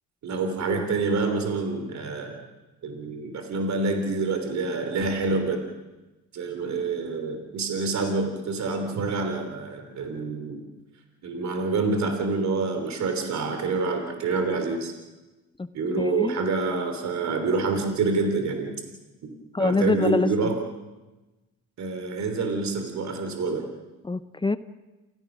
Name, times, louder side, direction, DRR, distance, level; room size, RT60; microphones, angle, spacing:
voice 1, 0.2-2.4 2.8-5.6 6.3-10.6 11.2-14.9 15.7-18.8 19.6-20.7 21.8-23.7, right 3 dB, 65° right, 5 dB, 3.3 m, -27 dB
voice 2, 16.0-16.3 19.5-20.3 24.0-24.6, left 3 dB, 15° left, 13 dB, 0.8 m, -25 dB
29.0 x 16.0 x 6.1 m, 1.1 s
cardioid pair, 90°, 30 cm